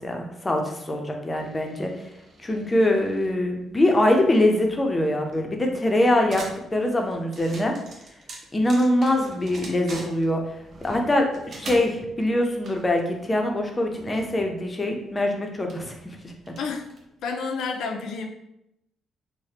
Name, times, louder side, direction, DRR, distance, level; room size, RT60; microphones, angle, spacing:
voice 1, 0.0-2.1 2.4-6.4 6.7-7.7 8.5-10.6 10.8-15.9 16.2-16.3, left 1 dB, 20° left, 2 dB, 0.5 m, -23 dB
sound 1, 1.3-17.3, right 2 dB, 55° right, 0.6 m, -45 dB
voice 2, 16.6-16.9 17.2-18.3, left 4 dB, 75° left, 4 dB, 0.4 m, -30 dB
3.2 x 2.1 x 2.8 m, 0.81 s
cardioid pair, 90°, 0 cm